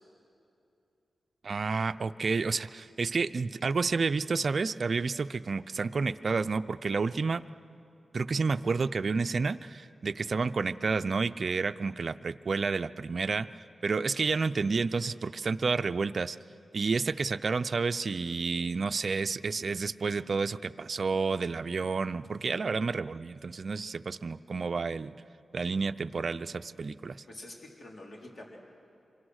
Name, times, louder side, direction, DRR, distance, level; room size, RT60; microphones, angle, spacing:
voice 1, 1.4-7.4 8.1-16.4 16.7-25.1 25.5-27.2, right 4 dB, 55° right, 12 dB, 0.5 m, -30 dB
voice 2, 27.3-28.6, left 1 dB, 50° left, -1 dB, 4.0 m, -46 dB
26.5 x 24.0 x 6.4 m, 2.7 s
wide cardioid pair, 80°, 0 cm